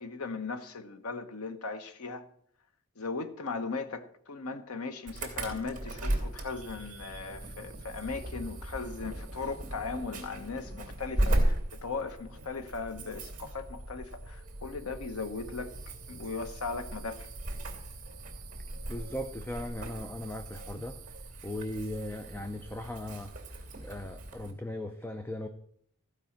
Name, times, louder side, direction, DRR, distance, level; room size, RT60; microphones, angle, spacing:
voice 1, 0.0-2.2 3.0-15.7 16.1-17.3, left 4 dB, 90° left, 1.1 m, -38 dB
Insect / Alarm, 5.1-24.5, right 1 dB, 35° right, 2.4 m, -37 dB
voice 2, 18.9-21.0 21.4-23.3 23.8-25.5, left 1 dB, 10° left, 0.5 m, -38 dB
14.5 x 5.4 x 7.3 m
head